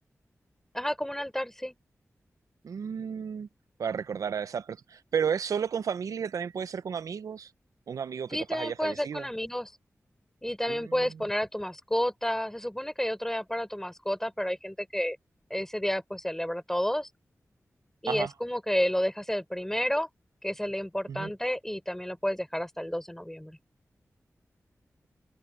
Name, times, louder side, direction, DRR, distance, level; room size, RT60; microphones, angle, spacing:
voice 1, 0.7-1.7 8.3-9.7 10.4-15.2 15.5-17.1 18.0-20.1 20.4-23.6, equal, 5° left, 4.1 m, -31 dB
voice 2, 2.6-3.5 3.8-7.5 7.9-9.3 10.7-11.2 18.1-18.3 21.1-21.3, right 7 dB, 85° right, 0.8 m, -33 dB
cardioid pair, 45°, 6 cm